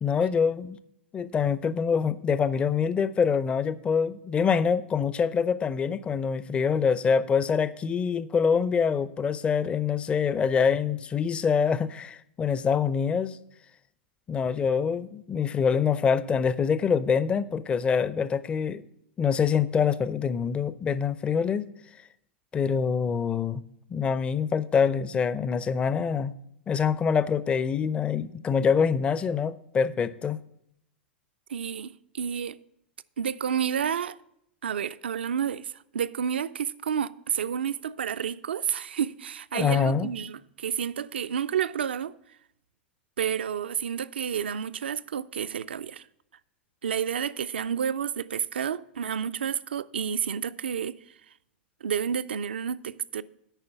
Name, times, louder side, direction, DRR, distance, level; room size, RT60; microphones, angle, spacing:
voice 1, 0.0-0.8 1.1-13.4 14.3-18.8 19.2-21.7 22.5-23.6 23.9-26.3 26.7-30.4 39.5-40.1, left 6 dB, 20° left, 0.4 m, -25 dB
voice 2, 31.5-32.6 33.2-34.2 34.6-42.1 43.2-46.1 46.8-51.0 51.8-53.2, right 8 dB, 65° right, 0.3 m, -30 dB
9.0 x 5.4 x 6.8 m
figure-of-eight pair, 95°, 6 cm